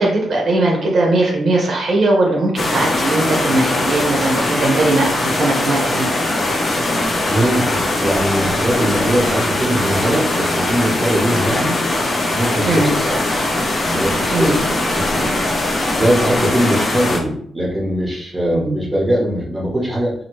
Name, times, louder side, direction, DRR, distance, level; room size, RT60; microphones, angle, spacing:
voice 1, 0.0-6.1 12.6-12.9 14.3-14.6 18.5-18.7, right 2 dB, 50° right, -1 dB, 0.8 m, -18 dB
sound 1, 2.6-17.2, left 2 dB, 30° left, 0.6 m, -20 dB
voice 2, 7.3-11.8 12.3-13.2 13.9-15.3 15.9-20.1, right 1 dB, 10° right, -4 dB, 0.9 m, -21 dB
2.8 x 2.7 x 3.0 m, 0.65 s
wide cardioid pair, 165°, 0 cm